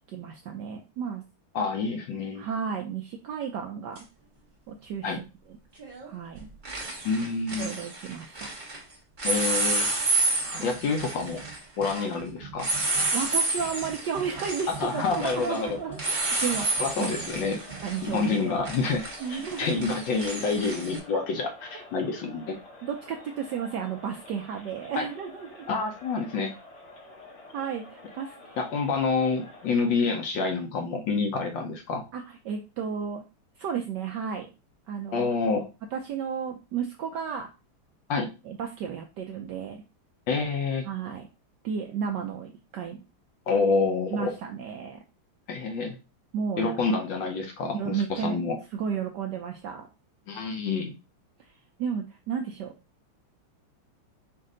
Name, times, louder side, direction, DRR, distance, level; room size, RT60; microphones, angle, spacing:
voice 1, 0.1-1.2 2.4-4.0 4.7-5.2 6.0-6.5 7.6-8.5 10.4-10.7 13.1-17.3 17.8-18.6 19.2-19.8 22.8-25.7 27.5-28.6 32.1-33.2 33.6-34.5 34.9-35.3 35.9-37.5 38.4-39.8 40.8-41.3 41.6-43.0 44.1-45.0 46.3-46.7 47.7-48.4 48.7-49.9 51.4-51.5 51.8-52.7, right 7 dB, 75° right, 3 dB, 1.0 m, -33 dB
voice 2, 1.5-2.5 5.0-5.2 7.0-7.7 9.2-9.9 10.6-11.4 11.8-12.7 14.8-15.8 16.8-17.6 18.0-19.0 19.3-22.6 25.0-25.1 25.7-26.5 28.6-32.0 35.1-35.7 38.1-38.3 40.3-40.9 43.5-44.3 45.5-46.0 46.6-48.6 50.3-50.9, left 4 dB, 70° left, 4 dB, 1.3 m, -28 dB
sound 1, 4.0-4.1 5.8-6.1 6.4-8.8 9.2-21.0, right 2 dB, 30° right, 0.9 m, -30 dB
Crowd, 13.9-30.2, left 2 dB, 85° left, 2.4 m, -49 dB
5.4 x 2.5 x 3.7 m, 0.29 s
omnidirectional pair, 2.4 m